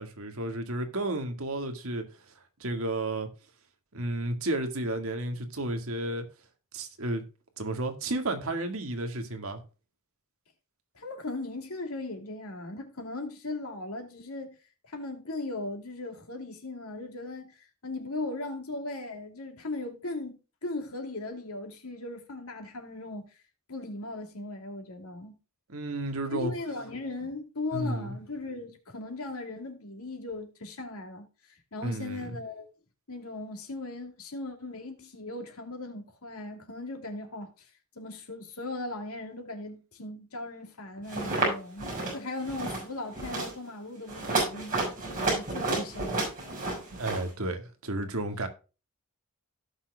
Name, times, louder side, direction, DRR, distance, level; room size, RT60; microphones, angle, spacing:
voice 1, 0.0-2.3 2.6-3.3 3.9-6.3 6.7-7.2 7.6-9.6 25.7-26.5 27.2-27.3 27.7-28.2 31.8-32.4 46.9-48.5, right 1 dB, 70° right, 1.8 m, -32 dB
voice 2, 10.9-14.6 14.9-23.4 23.7-25.4 26.3-32.7 33.1-37.7 37.9-46.3, left 2 dB, 90° left, 2.7 m, -38 dB
sound 1, 41.1-41.5 41.8-42.1 42.4-42.8 43.1-43.5 44.1-47.2, right 2 dB, 40° right, 6.1 m, -30 dB
17.0 x 6.2 x 2.3 m
head